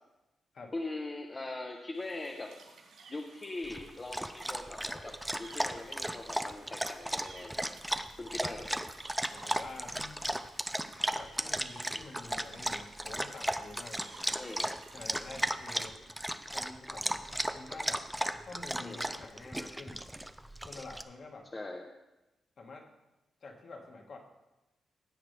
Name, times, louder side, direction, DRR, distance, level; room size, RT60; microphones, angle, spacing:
voice 1, 0.7-2.5 3.1-7.7 8.2-8.7 14.4-14.7 18.8-19.1 21.5-21.9, left 2 dB, 20° left, 1 dB, 0.8 m, -41 dB
sound 1, 1.9-15.7, right 4 dB, 85° right, 3.7 m, -57 dB
Dog, 3.6-21.0, right 1 dB, 5° right, 0.4 m, -36 dB
voice 2, 9.3-10.2 11.0-14.1 14.9-16.0 16.5-17.2 17.5-18.1 18.4-20.1 20.6-21.5 22.6-22.9 23.4-24.2, left 3 dB, 45° left, 1 dB, 1.7 m, -48 dB
16.0 x 9.1 x 3.3 m, 1.0 s
wide cardioid pair, 175°, 0 cm